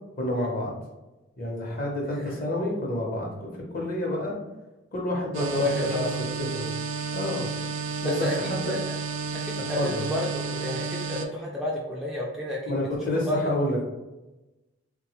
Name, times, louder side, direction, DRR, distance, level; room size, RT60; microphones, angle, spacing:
voice 1, 0.2-0.7 1.4-4.3 4.9-5.9 6.4-6.7 7.1-7.5 8.0-8.7 9.8-10.0 12.7-13.8, left 1 dB, 45° left, -1 dB, 0.8 m, -29 dB
sound 1, 5.3-11.3, right 5 dB, 80° right, 0.4 m, -32 dB
voice 2, 5.4-6.2 8.0-8.9 9.3-12.8 13.1-13.5, left 1 dB, ahead, -5 dB, 0.3 m, -31 dB
3.3 x 2.2 x 2.9 m, 1.0 s
head